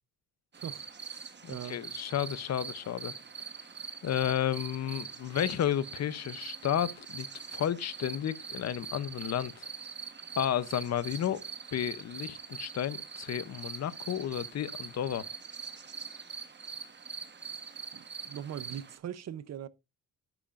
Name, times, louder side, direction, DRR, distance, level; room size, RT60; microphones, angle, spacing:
sound 1, 0.5-19.0, right 6 dB, 30° right, 1.1 m, -43 dB
voice 1, 0.5-1.8 17.9-19.7, right 10 dB, 50° right, 0.6 m, -41 dB
voice 2, 1.7-3.1 4.0-9.7 10.4-11.4 11.7-15.2, left 10 dB, 50° left, 0.6 m, -32 dB
11.0 x 8.7 x 2.4 m
wide cardioid pair, 150°, 34 cm